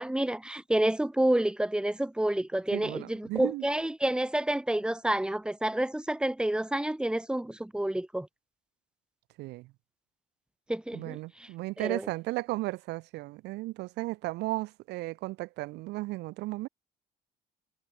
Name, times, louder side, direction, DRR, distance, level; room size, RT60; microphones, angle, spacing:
voice 1, 0.0-8.3 10.7-11.5 11.8-12.0, right 1 dB, 5° right, 1.7 m, -29 dB
voice 2, 2.7-3.7 9.4-9.7 10.9-16.7, right 20 dB, 90° right, 1.9 m, -35 dB
cardioid pair, 110°, 17 cm